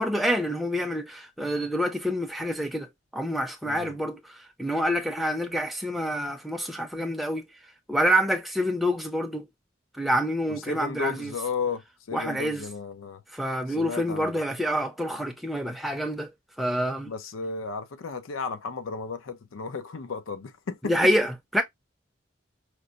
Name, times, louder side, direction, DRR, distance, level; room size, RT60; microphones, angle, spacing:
voice 1, 0.0-2.9 3.1-4.2 4.6-7.4 7.9-9.4 10.0-11.3 12.1-12.6 13.3-16.3 16.6-17.1 20.8-21.6, equal, ahead, 0.5 m, -27 dB
voice 2, 3.6-4.0 10.5-13.2 13.8-14.3 17.1-21.1, left 5 dB, 85° left, 0.5 m, -34 dB
4.4 x 2.0 x 2.4 m
head